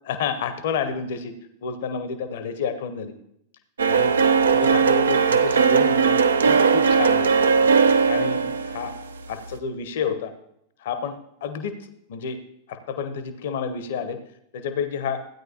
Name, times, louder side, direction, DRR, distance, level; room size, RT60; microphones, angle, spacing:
voice 1, 0.0-1.3 1.6-3.1 3.9-4.1 4.5-7.5 8.1-8.9 9.3-10.3 10.8-12.4 12.7-14.2 14.5-15.2, left 6 dB, 55° left, 10 dB, 0.8 m, -30 dB
sound 1, 3.8-9.6, right 5 dB, 70° right, 0.5 m, -19 dB
15.5 x 9.3 x 2.8 m, 0.76 s
figure-of-eight pair, 90°, 0 cm